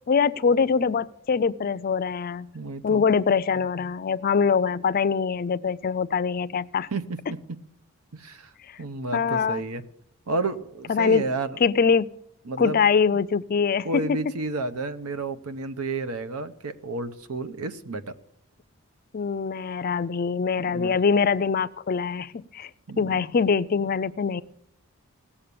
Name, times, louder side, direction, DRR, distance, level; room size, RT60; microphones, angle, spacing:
voice 1, 0.0-2.5 2.8-6.9 9.1-9.6 10.9-11.2 11.6-12.1 12.6-14.2 19.1-22.7 23.0-24.4, left 5 dB, 40° left, 16 dB, 0.4 m, -23 dB
voice 2, 2.5-3.0 6.9-7.6 8.1-8.5 8.8-9.8 10.3-11.6 12.5-12.8 13.8-18.2 20.6-21.0 22.9-23.3, right 3 dB, 85° right, 12 dB, 0.9 m, -31 dB
17.5 x 7.2 x 6.9 m, 0.82 s
head